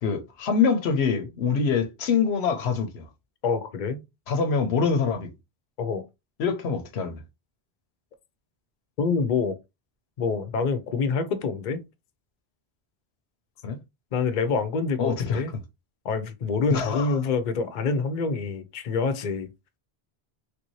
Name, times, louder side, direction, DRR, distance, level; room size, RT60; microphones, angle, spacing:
voice 1, 0.0-3.1 4.3-5.3 6.4-7.2 13.6-13.8 15.0-15.6 16.7-17.2, left 5 dB, 90° left, 0.9 m, -25 dB
voice 2, 3.4-4.0 5.8-6.0 9.0-9.5 10.2-11.8 14.1-15.5 16.0-19.5, left 4 dB, 50° left, 0.7 m, -26 dB
3.3 x 2.6 x 3.0 m
omnidirectional pair, 1.1 m